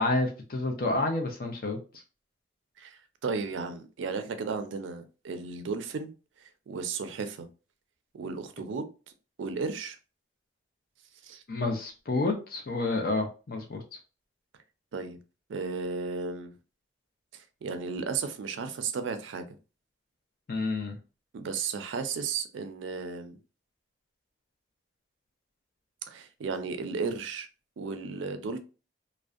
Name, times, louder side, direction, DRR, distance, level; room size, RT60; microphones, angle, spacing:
voice 1, 0.0-1.8 11.5-13.8 20.5-21.0, left 2 dB, 50° left, 0.4 m, -29 dB
voice 2, 2.8-6.1 6.4-7.5 8.1-8.9 9.4-10.0 11.2-11.4 14.9-15.2 15.5-16.5 17.3-19.4 21.3-23.4 26.1-27.5 27.8-28.6, right 5 dB, 85° right, 0.4 m, -34 dB
2.5 x 2.0 x 2.3 m
head